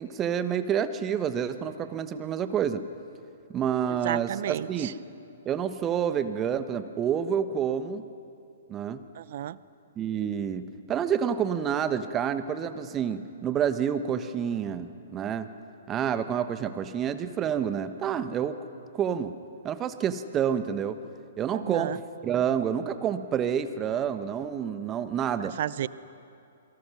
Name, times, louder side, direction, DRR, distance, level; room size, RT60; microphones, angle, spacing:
voice 1, 0.0-2.8 3.5-4.9 5.4-8.0 8.7-9.0 10.0-15.5 15.9-18.6 18.9-19.3 19.6-21.0 21.4-21.9 22.2-25.6, right 8 dB, 20° right, 10 dB, 1.3 m, -28 dB
voice 2, 3.9-4.9 9.1-9.6 21.5-22.0 25.6-25.9, right 11 dB, 50° right, 18 dB, 0.7 m, -32 dB
27.5 x 24.0 x 6.3 m, 2.7 s
figure-of-eight pair, 120°, 0 cm